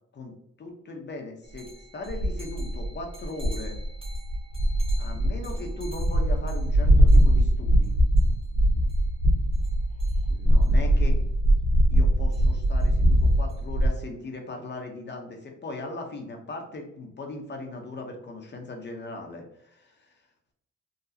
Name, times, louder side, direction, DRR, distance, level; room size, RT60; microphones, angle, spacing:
voice 1, 0.1-3.8 5.0-8.0 10.3-11.2 11.9-20.1, left 2 dB, 35° left, 3 dB, 0.9 m, -39 dB
sound 1, 1.6-1.7 2.1-13.9, equal, 20° right, 1.4 m, -22 dB
3.9 x 2.3 x 2.8 m, 0.73 s
cardioid pair, 90°, 30 cm